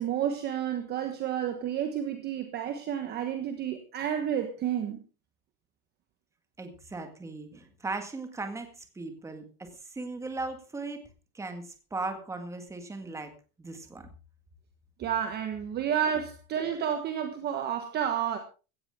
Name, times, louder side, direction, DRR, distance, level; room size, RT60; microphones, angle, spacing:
voice 1, 0.0-5.0 15.0-18.4, right 9 dB, 20° right, 1.3 m, -30 dB
voice 2, 6.6-11.1 11.3-13.3 13.6-14.1, right 3 dB, 5° right, 1.8 m, -38 dB
16.5 x 14.5 x 3.7 m
supercardioid pair, 180°, 46 cm